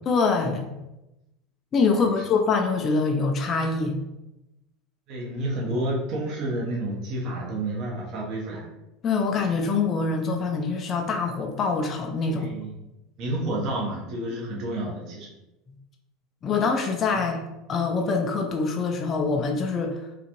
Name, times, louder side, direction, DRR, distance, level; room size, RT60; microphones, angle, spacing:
voice 1, 0.1-0.7 1.7-4.0 9.0-12.5 16.4-17.4 17.7-20.0, left 4 dB, 35° left, 2 dB, 0.5 m, -24 dB
voice 2, 1.9-2.2 5.1-8.7 12.3-12.8 13.2-15.3 17.1-17.2, right 1 dB, 55° right, -3 dB, 0.9 m, -30 dB
3.7 x 2.4 x 3.0 m, 0.95 s
hypercardioid pair, 100°, 0 cm